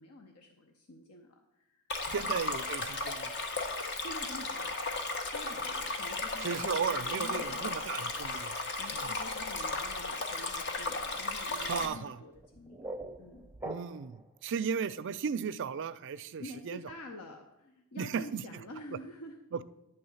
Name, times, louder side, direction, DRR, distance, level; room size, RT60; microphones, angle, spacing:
voice 1, 0.0-1.8 2.2-2.3 4.0-4.7 5.3-8.3 8.8-13.5 16.2-19.4, left 1 dB, 85° left, 3 dB, 0.8 m, -48 dB
Stream, 1.9-11.9, left 2 dB, 50° left, 0.9 m, -35 dB
voice 2, 2.1-3.3 6.4-8.6 8.9-9.1 11.6-12.2 13.6-16.8 18.0-18.4 19.5-19.6, right 6 dB, 55° right, 12 dB, 0.4 m, -35 dB
sound 1, 12.3-14.3, right 2 dB, 10° right, 0.6 m, -43 dB
10.5 x 3.5 x 7.0 m, 0.91 s
head